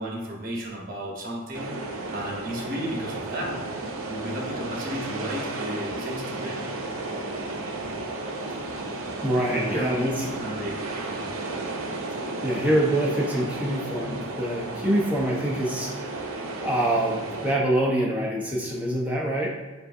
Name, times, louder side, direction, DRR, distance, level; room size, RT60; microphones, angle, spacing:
voice 1, 0.0-1.8 2.1-3.6 4.1-6.7 9.5-11.3, equal, 45° right, -2 dB, 1.1 m, -33 dB
sound 1, 1.5-17.6, right 2 dB, 85° right, 0.6 m, -33 dB
voice 2, 9.2-10.2 12.4-16.2 16.6-19.5, right 1 dB, 10° right, -4 dB, 0.8 m, -25 dB
7.1 x 2.6 x 2.6 m, 1.3 s
head